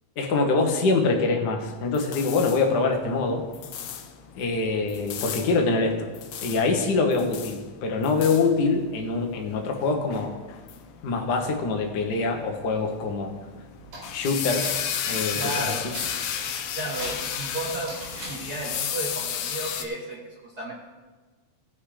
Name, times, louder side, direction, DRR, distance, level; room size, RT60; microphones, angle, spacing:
voice 1, 0.2-3.4 4.3-6.1 6.4-10.4 11.0-13.3 14.1-14.7 15.1-15.7, left 3 dB, 55° left, 3 dB, 1.1 m, -24 dB
sound 1, 1.6-19.8, left 8 dB, 75° left, 1.4 m, -34 dB
sound 2, 13.8-18.8, right 1 dB, 85° right, 5.5 m, -42 dB
voice 2, 15.3-15.9 16.7-17.9 18.3-20.7, right 2 dB, 40° right, -5 dB, 1.6 m, -33 dB
16.0 x 5.6 x 5.0 m, 1.3 s
omnidirectional pair, 3.4 m